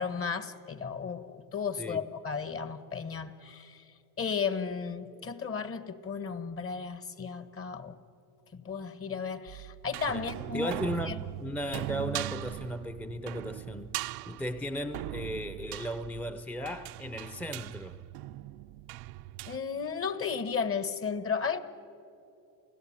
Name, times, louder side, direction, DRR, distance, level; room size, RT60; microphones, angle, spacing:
voice 1, 0.0-3.8 4.2-7.9 8.6-10.8 11.0-11.2 19.5-21.6, left 6 dB, 35° left, 1.4 m, -34 dB
sound 1, 9.5-19.6, right 16 dB, 80° right, 0.6 m, -40 dB
voice 2, 10.5-13.9 14.3-18.0, equal, 5° left, 0.6 m, -36 dB
28.5 x 17.0 x 8.7 m
cardioid pair, 105°, 37 cm